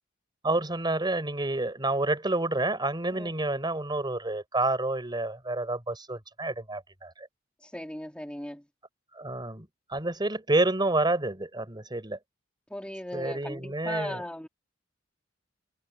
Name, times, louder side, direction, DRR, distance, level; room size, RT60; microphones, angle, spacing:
voice 1, 0.4-7.3 9.1-12.2 13.1-14.2, right 2 dB, 25° right, 4.1 m, -29 dB
voice 2, 7.6-8.6 12.7-14.5, left 1 dB, 5° left, 1.8 m, -37 dB
head